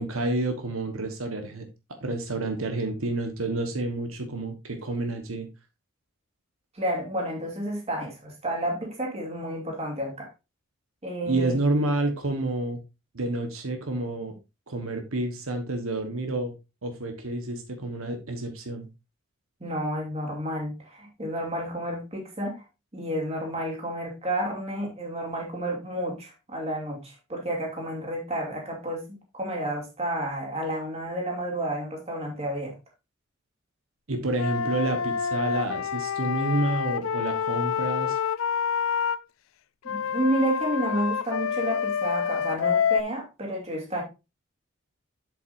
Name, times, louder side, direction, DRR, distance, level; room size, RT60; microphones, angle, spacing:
voice 1, 0.0-1.6 2.0-5.5 11.2-12.8 13.1-14.4 14.7-16.5 16.8-18.9 34.1-38.2, right 2 dB, 85° right, 5 dB, 1.3 m, -29 dB
voice 2, 6.7-10.3 11.0-11.6 19.6-22.6 22.9-32.7 39.8-44.0, right 1 dB, 30° right, 0 dB, 2.6 m, -30 dB
Wind instrument woodwind instrument, 34.3-39.2 39.8-43.0, left 7 dB, 75° left, 0.4 m, -27 dB
7.8 x 7.6 x 2.6 m, 0.26 s
head